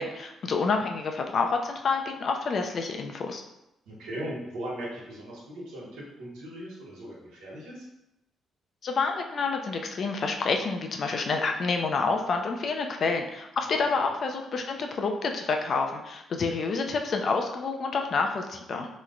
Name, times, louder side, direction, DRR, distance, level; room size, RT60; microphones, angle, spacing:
voice 1, 0.0-3.4 8.8-18.9, left 4 dB, 50° left, 4 dB, 0.4 m, -28 dB
voice 2, 3.9-7.8 14.0-14.1, right 1 dB, 90° right, -5 dB, 1.1 m, -38 dB
3.0 x 2.1 x 3.7 m, 0.89 s
cardioid pair, 90°, 0 cm